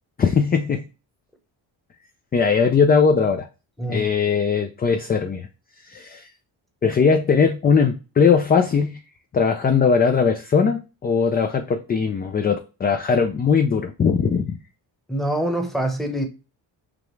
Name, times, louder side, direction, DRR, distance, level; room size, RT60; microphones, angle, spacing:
voice 1, 0.2-0.8 2.3-3.5 3.9-5.5 5.8-6.3 6.8-9.0 9.3-14.6, left 5 dB, 25° left, 0.3 m, -19 dB
voice 2, 15.1-16.3, right 1 dB, ahead, 0.9 m, -25 dB
5.0 x 2.4 x 3.1 m
cardioid pair, 110°, 44 cm